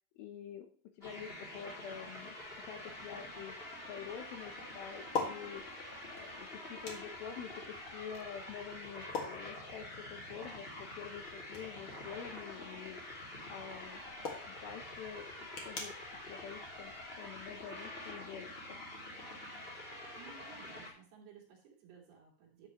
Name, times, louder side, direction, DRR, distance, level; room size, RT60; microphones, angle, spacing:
voice 1, 0.2-0.7 1.0-3.6 3.9-5.8 6.1-13.0 13.5-14.0 14.5-15.9 16.3-19.0, left 8 dB, 75° left, 6 dB, 2.5 m, -47 dB
sound 1, 1.0-20.9, left 1 dB, 20° left, 2.0 m, -47 dB
sound 2, 2.4-17.6, left 4 dB, 45° left, 1.8 m, -47 dB
voice 2, 20.1-22.7, right 6 dB, 70° right, -2 dB, 4.3 m, -57 dB
11.5 x 7.6 x 3.0 m, 0.44 s
omnidirectional pair, 4.7 m